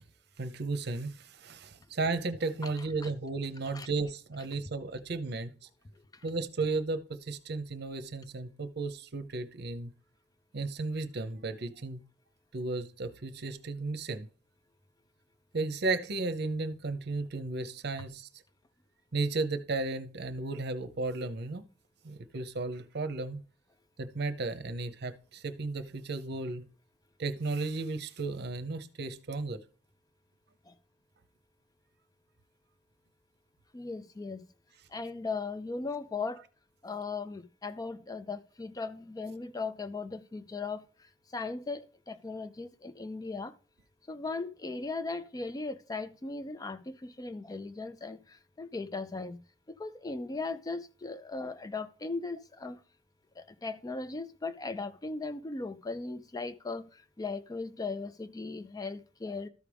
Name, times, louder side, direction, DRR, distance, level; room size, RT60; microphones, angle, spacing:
voice 1, 0.4-5.5 6.2-9.9 10.5-12.0 12.5-14.3 15.5-18.3 19.1-21.6 22.0-23.4 24.0-26.7 27.2-29.6, right 3 dB, 60° right, 0.7 m, -34 dB
voice 2, 33.7-34.5 34.9-36.4 36.8-40.8 41.3-43.5 44.1-49.4 49.7-52.8 53.4-59.5, left 3 dB, 20° left, 0.4 m, -38 dB
13.0 x 4.9 x 3.4 m
head